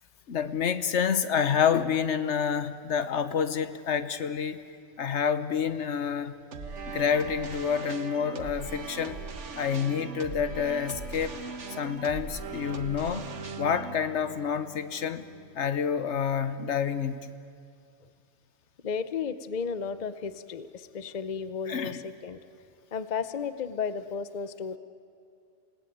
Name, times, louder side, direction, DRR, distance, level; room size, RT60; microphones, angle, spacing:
voice 1, 0.3-4.6 5.0-6.3 6.9-9.2 9.6-11.4 11.8-13.3 13.6-15.2 15.5-17.2 21.7-22.0, left 7 dB, 75° left, 11 dB, 1.2 m, -28 dB
sound 1, 6.5-15.7, right 4 dB, 80° right, 1.6 m, -40 dB
voice 2, 18.8-22.4 22.9-24.8, left 6 dB, 40° left, 12 dB, 0.8 m, -33 dB
28.5 x 17.5 x 9.2 m, 2.4 s
omnidirectional pair, 1.2 m